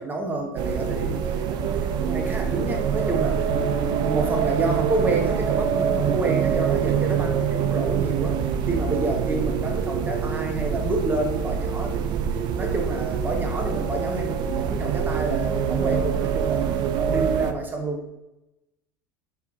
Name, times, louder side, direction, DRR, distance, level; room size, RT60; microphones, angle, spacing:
voice 1, 0.0-16.7 16.9-18.1, right 2 dB, 15° right, 2 dB, 0.8 m, -29 dB
sound 1, 0.6-17.5, right 7 dB, 45° right, 0.4 m, -25 dB
voice 2, 6.8-7.2, right 3 dB, 90° right, 2 dB, 0.6 m, -40 dB
4.2 x 2.7 x 3.9 m, 0.94 s
hypercardioid pair, 80°, 11 cm